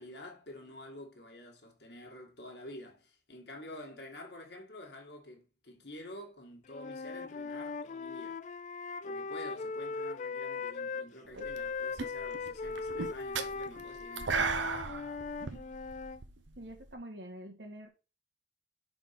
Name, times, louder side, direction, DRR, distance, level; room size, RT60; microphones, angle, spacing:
voice 1, 0.0-8.4 9.0-14.7, left 1 dB, 60° left, 1.7 m, -49 dB
Wind instrument woodwind instrument, 6.7-11.1 11.4-16.2, left 4 dB, 40° left, 0.3 m, -39 dB
sound 1, 11.3-11.7 12.0-16.9, right 5 dB, 80° right, 0.8 m, -36 dB
voice 2, 16.6-17.9, right 1 dB, 65° right, 1.6 m, -46 dB
5.3 x 4.4 x 5.8 m
head